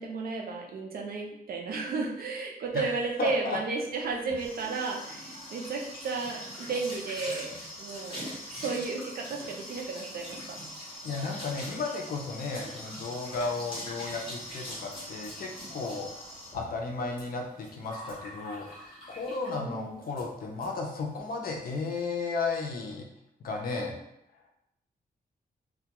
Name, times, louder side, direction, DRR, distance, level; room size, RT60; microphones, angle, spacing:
voice 1, 0.0-10.6 19.5-20.0, right 4 dB, 70° right, 0 dB, 0.5 m, -33 dB
voice 2, 3.2-3.6 11.0-18.7 19.1-23.0 23.4-24.0, left 4 dB, 65° left, 1 dB, 0.5 m, -34 dB
sound 1, 3.9-19.6 20.0-20.3 20.6-20.7 21.0-21.4, equal, 30° left, 0.9 m, -43 dB
2.2 x 2.2 x 2.8 m, 0.79 s
wide cardioid pair, 175°, 16 cm